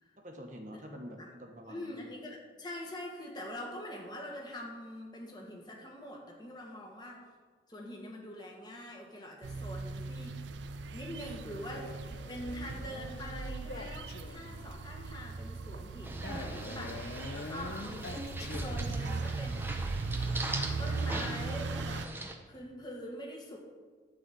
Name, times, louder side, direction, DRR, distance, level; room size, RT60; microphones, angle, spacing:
voice 1, 0.2-2.0, equal, 45° right, 2 dB, 1.3 m, -46 dB
voice 2, 1.7-7.2 7.7-10.4 10.9-11.9 12.3-19.8 20.1-22.1 22.5-23.6, left 1 dB, 25° left, -1 dB, 1.5 m, -44 dB
sound 1, 9.4-22.1, right 3 dB, 80° right, 0.5 m, -38 dB
Male speech man speaking, 11.7-14.7 16.2-19.2, left 2 dB, 60° left, 0.7 m, -45 dB
sound 2, 16.0-22.3, right 2 dB, 10° right, 0.7 m, -41 dB
11.0 x 4.2 x 7.7 m, 1.5 s
head